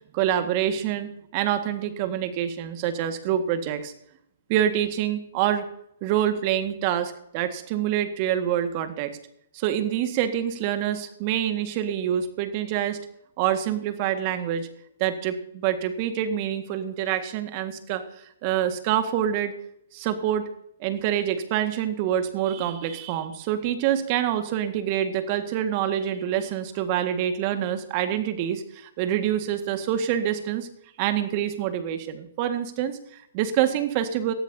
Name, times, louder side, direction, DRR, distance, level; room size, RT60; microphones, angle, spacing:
voice 1, 0.1-3.9 4.5-5.6 6.0-9.1 9.5-13.0 13.4-14.7 15.0-19.5 19.9-20.5 20.8-30.7 31.0-34.3, right 10 dB, 40° right, 8 dB, 1.7 m, -26 dB
19.0 x 13.5 x 2.8 m, 0.73 s
hypercardioid pair, 130°, 0 cm